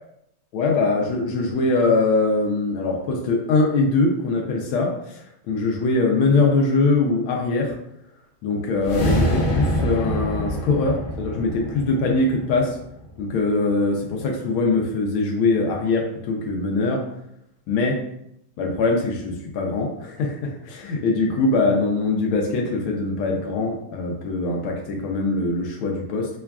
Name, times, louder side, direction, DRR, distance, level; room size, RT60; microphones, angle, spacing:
voice 1, 0.5-7.8 8.4-12.8 13.2-17.1 17.7-18.0 18.6-26.3, left 3 dB, 85° left, 0 dB, 1.4 m, -22 dB
sound 1, 8.8-13.2, equal, 70° left, 0.8 m, -25 dB
5.9 x 2.3 x 2.3 m, 0.77 s
omnidirectional pair, 2.2 m